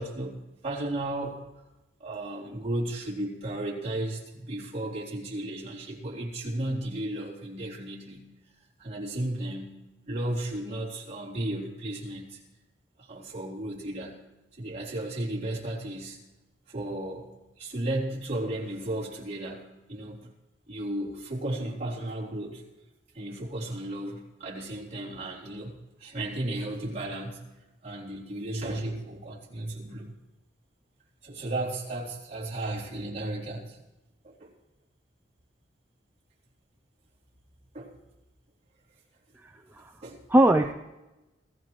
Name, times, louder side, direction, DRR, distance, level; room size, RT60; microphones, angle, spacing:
voice 1, 0.0-1.4 2.0-8.3 8.8-9.8 10.1-12.4 13.0-14.2 14.6-16.2 16.7-17.3 17.6-20.3 20.7-22.6 23.1-27.4 27.8-30.1 31.2-33.8 34.2-34.5 37.7-37.9 39.8-40.2, right 1 dB, 40° right, -5 dB, 3.5 m, -34 dB
voice 2, 39.4-39.9 40.3-40.7, right 1 dB, 10° right, 5 dB, 0.5 m, -22 dB
28.0 x 15.5 x 3.2 m, 1.0 s
head